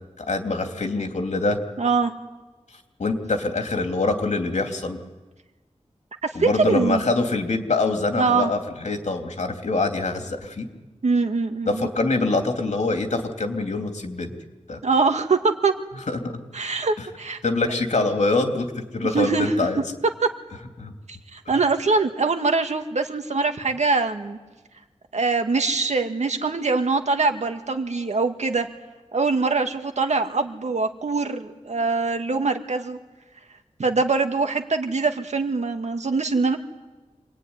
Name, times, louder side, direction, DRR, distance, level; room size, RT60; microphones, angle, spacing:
voice 1, 0.2-1.6 3.0-5.0 6.3-10.7 11.7-14.3 14.7-14.8 16.1-16.3 17.0-17.1 17.4-19.8 20.8-20.9 21.5-21.6, left 3 dB, 75° left, 4 dB, 3.1 m, -24 dB
voice 2, 1.8-2.1 6.2-7.0 8.2-8.5 11.0-11.9 14.8-15.7 16.5-17.4 19.1-19.5 20.2-20.3 21.3-24.4 25.1-28.7 29.1-33.0 33.8-36.6, right 4 dB, 70° right, 6 dB, 2.1 m, -23 dB
27.0 x 22.5 x 9.8 m, 1.2 s
wide cardioid pair, 90°, 12 cm